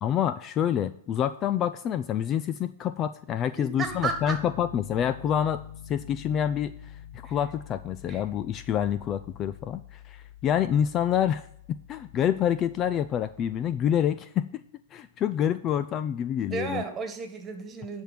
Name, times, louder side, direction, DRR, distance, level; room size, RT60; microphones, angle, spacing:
voice 1, 0.0-5.6 5.9-14.6 14.9-16.8, left 9 dB, 30° left, 13 dB, 0.4 m, -27 dB
voice 2, 3.6-4.4 7.2-7.3 8.1-8.2 16.5-18.0, right 4 dB, 20° right, 6 dB, 1.9 m, -33 dB
Piano, 3.8-14.1, left 9 dB, 75° left, 1.2 m, -46 dB
10.5 x 4.5 x 7.6 m, 0.70 s
hypercardioid pair, 130°, 0 cm